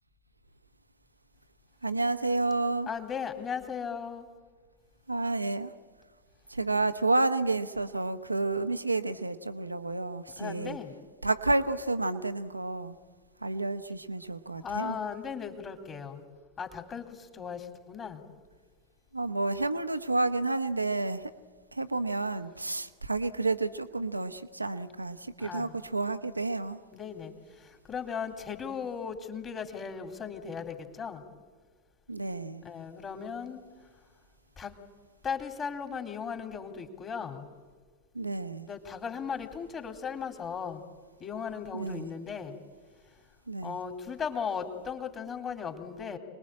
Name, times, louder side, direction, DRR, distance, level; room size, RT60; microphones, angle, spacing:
voice 1, 1.8-2.9 5.1-5.7 6.5-10.8 11.2-13.0 13.4-15.0 19.1-21.3 21.7-26.8 32.1-32.6 38.1-38.7 41.7-42.1 43.5-43.8, right 3 dB, 85° right, 1.2 m, -30 dB
voice 2, 2.9-4.3 10.4-10.9 14.6-16.2 16.6-17.1 17.3-18.2 25.4-25.7 26.9-27.3 27.9-31.2 32.6-33.6 34.6-34.7 35.2-37.4 38.7-40.8 41.2-42.5 43.6-46.2, left 6 dB, 25° left, 3.0 m, -37 dB
27.5 x 21.0 x 8.7 m
figure-of-eight pair, 90°, 0 cm